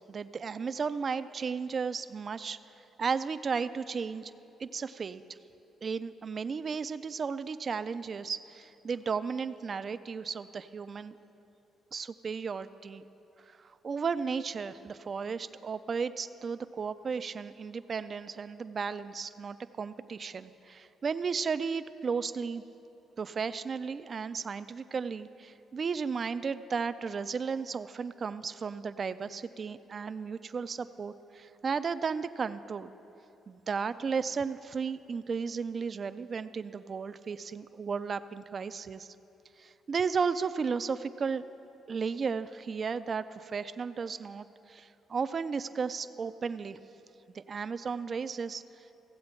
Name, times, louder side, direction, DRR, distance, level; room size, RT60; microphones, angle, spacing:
voice 1, 0.1-2.6 3.0-4.3 4.6-5.2 5.8-11.2 11.9-13.1 13.5-22.6 23.2-32.9 33.5-39.1 39.6-41.4 41.9-46.8 47.3-49.0, right 5 dB, 45° right, 12 dB, 0.3 m, -34 dB
15.0 x 7.7 x 4.4 m, 2.9 s
cardioid pair, 90°, 0 cm